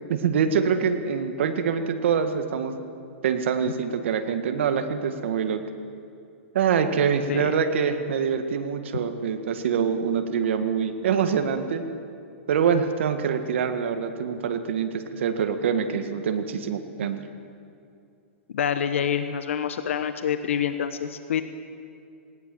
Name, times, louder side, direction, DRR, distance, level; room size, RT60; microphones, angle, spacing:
voice 1, 0.1-2.8 3.2-5.6 6.5-11.8 12.5-17.2, right 7 dB, 65° right, 8 dB, 1.8 m, -25 dB
voice 2, 18.5-21.4, left 8 dB, 75° left, 10 dB, 1.1 m, -27 dB
19.0 x 18.0 x 7.9 m, 2.5 s
hypercardioid pair, 150°, 7 cm